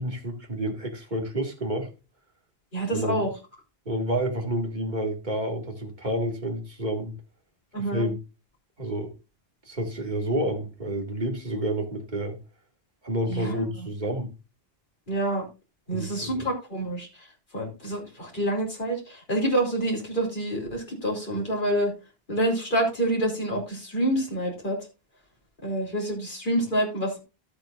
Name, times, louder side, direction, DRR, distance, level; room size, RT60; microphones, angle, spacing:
voice 1, 0.0-1.9 2.9-3.3 3.9-7.1 7.9-8.2 8.8-9.1 9.7-12.4 13.0-14.3 15.9-16.4, right 1 dB, 45° right, 2 dB, 2.4 m, -29 dB
voice 2, 2.7-3.3 7.7-8.1 13.3-13.9 15.1-15.5 15.9-17.3 17.5-21.9 22.3-24.8 25.6-27.2, right 1 dB, 55° left, -1 dB, 3.7 m, -27 dB
13.5 x 8.2 x 2.5 m, 0.27 s
omnidirectional pair, 1.0 m